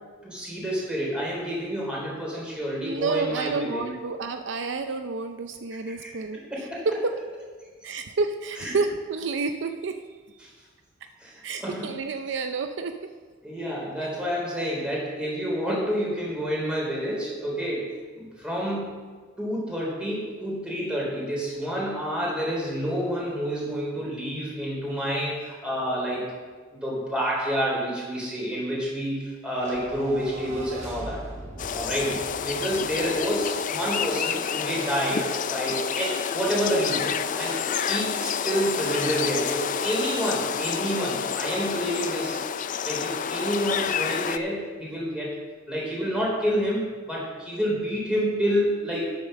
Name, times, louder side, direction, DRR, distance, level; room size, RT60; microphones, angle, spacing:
voice 1, 0.2-3.9 5.9-6.1 6.5-6.9 8.6-8.7 10.4-10.5 11.2-11.9 13.4-18.9 19.4-26.3 26.7-31.2 31.7-42.4 42.8-45.3 45.7-49.0, equal, 5° right, -5 dB, 3.8 m, -29 dB
voice 2, 2.8-6.9 7.8-10.0 10.3-10.4 11.4-12.9 14.2-14.3, right 4 dB, 70° right, 7 dB, 0.5 m, -30 dB
sound 1, 29.5-34.0, right 2 dB, 40° right, 2.9 m, -41 dB
sound 2, 31.6-44.4, left 7 dB, 45° left, 0.4 m, -29 dB
9.1 x 7.2 x 6.4 m, 1.4 s
head